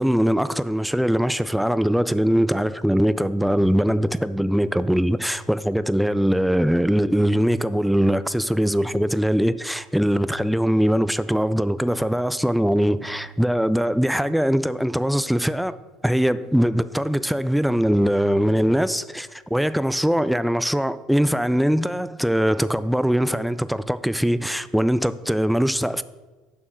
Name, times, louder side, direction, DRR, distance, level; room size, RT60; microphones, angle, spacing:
voice 1, 0.0-26.0, equal, ahead, 0.3 m, -21 dB
7.6 x 6.1 x 6.2 m
supercardioid pair, 105°, 0 cm